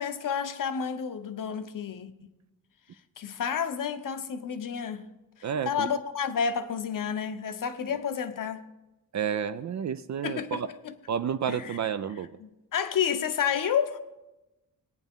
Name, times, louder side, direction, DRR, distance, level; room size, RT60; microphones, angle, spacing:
voice 1, 0.0-2.1 3.2-5.1 5.4-8.6 10.2-10.9 11.5-11.8 12.4-14.0, left 7 dB, 60° left, 0.9 m, -30 dB
voice 2, 5.4-5.9 9.1-10.7 11.1-12.3, right 8 dB, 50° right, 0.4 m, -30 dB
20.0 x 9.2 x 3.6 m
wide cardioid pair, 110°, 36 cm